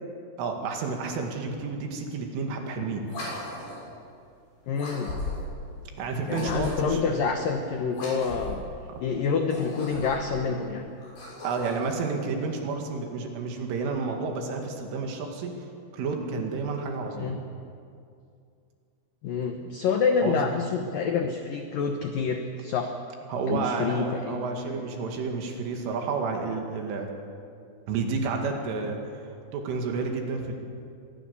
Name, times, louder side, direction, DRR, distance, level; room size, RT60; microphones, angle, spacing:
voice 1, 0.4-3.0 6.0-7.1 8.9-9.0 11.4-15.5 15.9-17.4 20.2-20.5 23.3-27.1 27.9-29.0 29.5-30.5, right 4 dB, 75° right, 2 dB, 4.6 m, -30 dB
sound 1, 3.0-3.9 4.7-5.5 6.3-7.0 7.9-8.6 9.4-10.3 11.0-11.9, left 2 dB, 50° left, 9.0 m, -36 dB
voice 2, 4.7-5.1 6.3-8.6 9.0-10.8 17.2-17.4 19.2-22.9 23.5-24.4 24.7-24.9, left 5 dB, 75° left, 4 dB, 2.1 m, -27 dB
25.0 x 21.0 x 7.0 m, 2.4 s
omnidirectional pair, 5.8 m